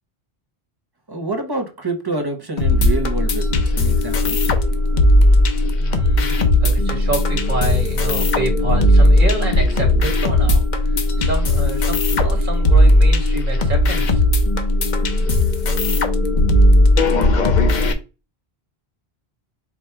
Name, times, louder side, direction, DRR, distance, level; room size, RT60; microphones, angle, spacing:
voice 1, 1.1-4.5, right 2 dB, 25° right, 0.8 m, -27 dB
sound 1, 2.6-17.9, left 1 dB, 50° left, 0.8 m, -16 dB
voice 2, 5.8-14.2, right 3 dB, 55° right, 1.7 m, -28 dB
4.9 x 2.3 x 4.3 m
omnidirectional pair, 1.0 m